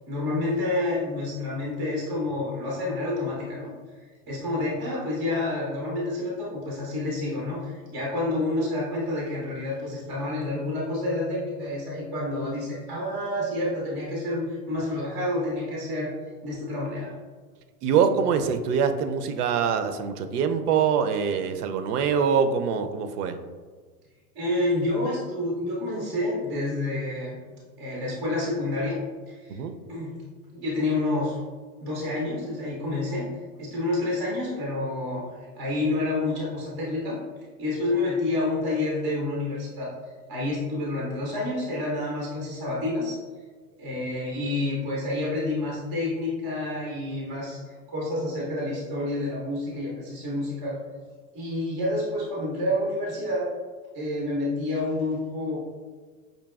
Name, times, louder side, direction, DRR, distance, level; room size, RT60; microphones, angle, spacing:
voice 1, 0.1-3.7 4.3-16.1 16.4-17.1 24.3-27.4 27.8-29.0 29.3-29.6 29.9-30.1 30.5-31.4 31.8-35.2 35.5-37.2 37.6-43.2 43.8-47.6 47.9-50.8 51.3-53.5 53.9-55.6, left 2 dB, 15° right, -4 dB, 0.3 m, -28 dB
voice 2, 17.8-23.4 29.5-29.7, right 7 dB, 80° right, 9 dB, 0.5 m, -24 dB
5.1 x 2.7 x 2.3 m, 1.5 s
supercardioid pair, 150°, 46 cm